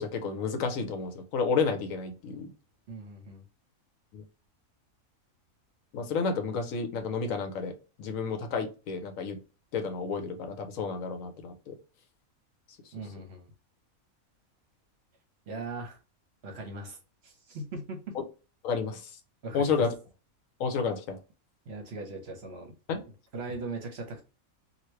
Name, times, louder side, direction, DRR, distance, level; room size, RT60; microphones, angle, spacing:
voice 1, 0.0-2.5 4.1-4.2 5.9-7.7 8.0-9.4 9.7-11.8 18.6-19.0 19.5-19.9 20.6-21.2 22.9-23.0, left 5 dB, 75° left, 1.0 m, -31 dB
voice 2, 2.9-3.4 12.9-13.5 15.5-16.0 16.4-17.0 17.2-18.2 19.4-19.9 21.7-22.8 23.3-24.2, right 2 dB, 55° right, 0.9 m, -39 dB
3.0 x 2.5 x 3.1 m
omnidirectional pair, 1.5 m